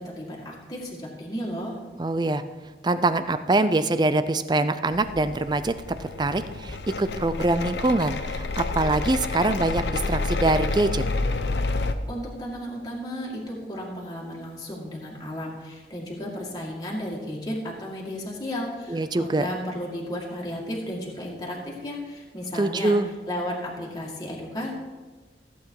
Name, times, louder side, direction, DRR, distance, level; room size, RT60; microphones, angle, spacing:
voice 1, 0.0-1.8 12.1-23.0 23.3-24.7, equal, 20° left, -3 dB, 2.1 m, -34 dB
voice 2, 2.0-2.4 2.8-5.7 6.0-11.0 18.9-19.5 22.5-23.1, right 2 dB, 25° right, 12 dB, 0.4 m, -24 dB
sound 1, 4.9-11.9, left 3 dB, 80° left, 0.7 m, -29 dB
15.0 x 8.1 x 4.7 m, 1.3 s
head